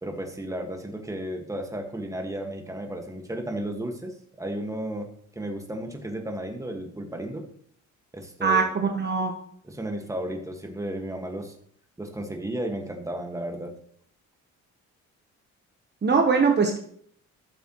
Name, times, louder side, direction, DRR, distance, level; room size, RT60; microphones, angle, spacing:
voice 1, 0.0-5.1 5.3-7.5 8.1-8.9 9.6-11.5 12.0-13.8, right 1 dB, 10° right, 3 dB, 1.7 m, -33 dB
voice 2, 8.4-9.3 16.0-16.8, right 5 dB, 35° right, 3 dB, 1.1 m, -22 dB
13.0 x 7.0 x 3.1 m, 0.63 s
cardioid pair, 90°, 30 cm